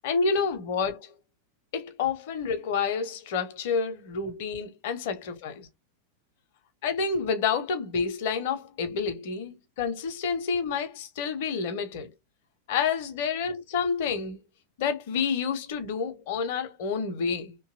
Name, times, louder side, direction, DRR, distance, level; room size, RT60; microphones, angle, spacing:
voice 1, 0.0-1.1 1.7-5.7 6.8-12.1 12.7-14.4 14.8-17.6, left 5 dB, 50° left, 0.6 m, -29 dB
2.7 x 2.3 x 2.6 m
figure-of-eight pair, 90°, 0 cm